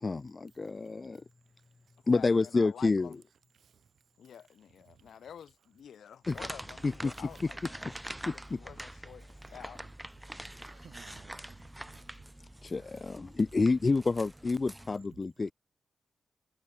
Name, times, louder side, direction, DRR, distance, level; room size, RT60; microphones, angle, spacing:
voice 1, 0.0-1.2 2.1-3.1 6.3-6.4 6.8-7.1 8.2-8.3 12.6-15.5, left 3 dB, 35° left, 0.4 m, -28 dB
voice 2, 2.1-3.2 4.2-7.9 8.3-9.9, left 8 dB, 90° left, 4.1 m, -49 dB
sound 1, 6.2-15.0, right 1 dB, 10° right, 2.0 m, -45 dB
voice 3, 10.4-11.6 11.9-12.0 12.7-13.0 14.9-15.2, right 7 dB, 75° right, 1.8 m, -57 dB
wide cardioid pair, 105°, 0 cm